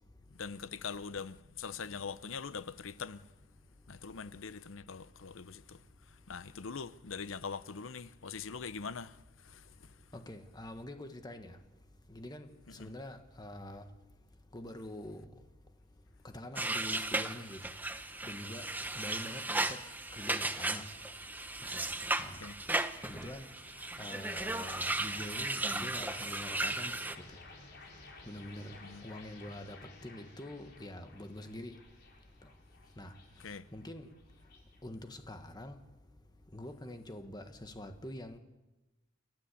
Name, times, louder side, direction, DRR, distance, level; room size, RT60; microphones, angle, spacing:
voice 1, 0.4-3.2 3.9-5.8 6.3-9.2 9.4-9.6 12.7-12.9 22.4-22.6 28.8-29.0 33.4-33.6, left 5 dB, 70° left, 0.7 m, -42 dB
voice 2, 10.1-11.6 12.1-13.8 14.5-15.3 16.2-17.7 18.2-18.7 19.0-19.8 20.1-20.8 21.7-21.8 22.2-22.4 23.1-23.5 24.0-26.9 28.3-31.7 33.0-33.1 33.7-34.1 34.8-35.8 36.5-38.4, left 1 dB, 20° left, 1.5 m, -45 dB
sound 1, 15.8-34.8, left 3 dB, 55° left, 4.3 m, -56 dB
sound 2, 16.6-27.2, right 2 dB, 10° right, 0.8 m, -36 dB
29.0 x 11.5 x 8.5 m
head